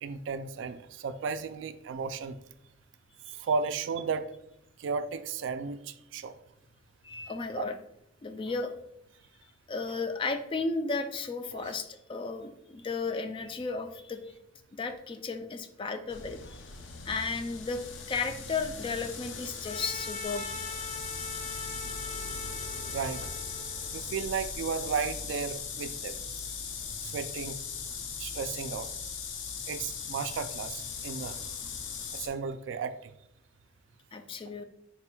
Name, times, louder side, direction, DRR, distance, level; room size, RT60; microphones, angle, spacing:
voice 1, 0.0-2.4 3.4-4.3 4.8-6.3 11.5-11.6 22.9-23.3 23.9-26.2 27.0-27.6 28.2-28.9 29.7-31.4 32.1-33.1, right 5 dB, 70° right, 11 dB, 0.3 m, -34 dB
voice 2, 7.0-7.8 8.2-8.7 9.7-14.3 14.7-16.6 17.1-17.8 18.1-20.5 34.1-34.6, left 4 dB, 25° left, 7 dB, 0.3 m, -34 dB
sound 1, 16.1-32.3, left 5 dB, 80° left, 0.5 m, -39 dB
Trumpet, 19.6-24.1, left 2 dB, 45° left, 0.7 m, -42 dB
4.1 x 2.2 x 4.3 m, 0.78 s
head